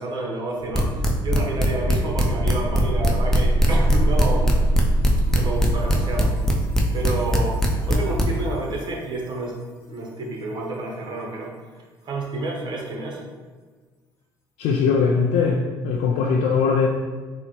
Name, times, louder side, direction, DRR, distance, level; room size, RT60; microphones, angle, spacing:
voice 1, 0.0-4.5 5.3-6.6 6.9-9.5 9.9-11.5 12.0-13.2, right 2 dB, 45° right, -1 dB, 0.8 m, -29 dB
sound 1, 0.7-8.2, equal, 5° left, 0.6 m, -20 dB
sound 2, 2.6-8.5, right 1 dB, 25° left, 1.0 m, -25 dB
voice 2, 14.6-16.9, left 5 dB, 70° left, -1 dB, 0.4 m, -20 dB
3.8 x 2.1 x 3.0 m, 1.4 s
hypercardioid pair, 60°, 11 cm